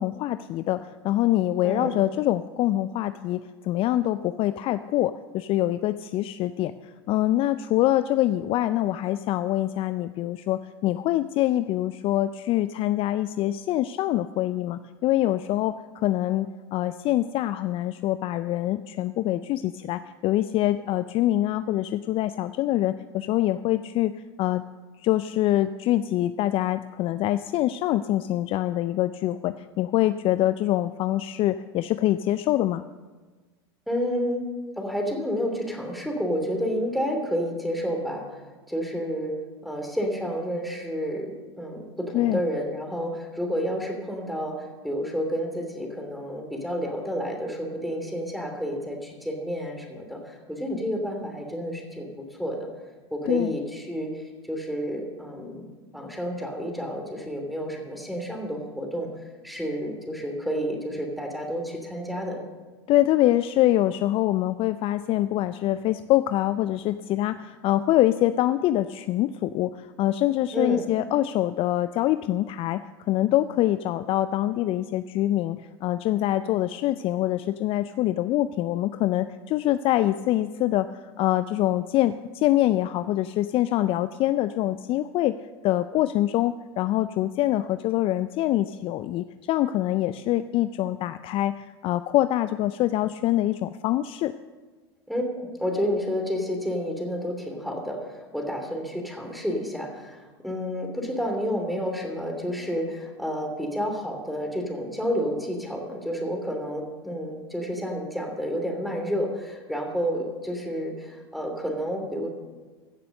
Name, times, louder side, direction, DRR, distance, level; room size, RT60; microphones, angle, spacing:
voice 1, 0.0-24.1 24.4-24.6 25.0-32.8 42.1-42.4 53.3-53.5 62.9-72.8 73.1-85.3 85.6-94.3, left 14 dB, 40° left, 13 dB, 0.4 m, -25 dB
voice 2, 1.6-2.0 33.9-34.4 34.8-39.3 39.6-52.7 53.1-59.1 59.4-62.4 70.5-70.9 95.1-112.3, equal, ahead, 2 dB, 2.9 m, -30 dB
15.5 x 6.9 x 6.5 m, 1.3 s
hypercardioid pair, 90°, 14 cm